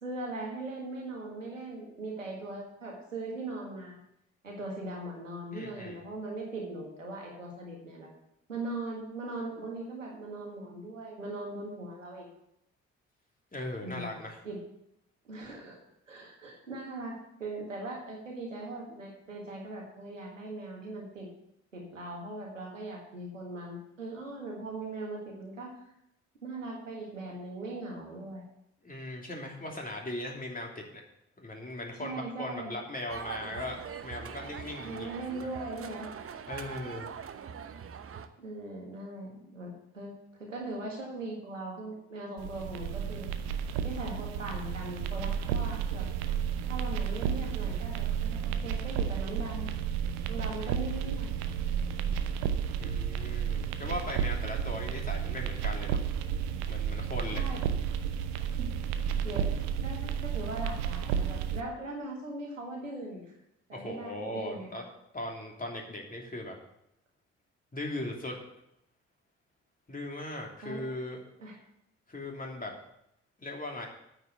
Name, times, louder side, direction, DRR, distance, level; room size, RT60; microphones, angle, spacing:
voice 1, 0.0-4.0 4.4-8.1 8.5-12.3 13.8-14.2 14.4-14.6 15.3-15.8 16.1-21.3 21.7-25.8 26.4-28.4 32.0-32.7 34.8-36.1 38.4-40.1 40.4-43.3 43.8-46.1 46.7-49.7 50.3-51.3 57.3-57.6 58.6-58.7 59.2-63.3 63.7-64.7 70.6-70.8 71.4-71.5, right 2 dB, 90° right, -1 dB, 1.7 m, -40 dB
voice 2, 5.5-6.0 13.5-14.4 28.8-31.0 31.4-35.1 36.5-37.1 52.8-56.0 56.7-57.5 63.7-64.8 65.1-66.5 67.7-68.4 69.9-71.2 72.1-72.7 73.4-73.9, left 1 dB, 20° left, 0 dB, 2.9 m, -38 dB
sound 1, 33.1-38.3, right 7 dB, 35° right, 0.9 m, -42 dB
sound 2, 42.4-61.6, right 8 dB, 70° right, 0.8 m, -32 dB
9.1 x 6.8 x 7.9 m, 0.79 s
figure-of-eight pair, 45°, 37 cm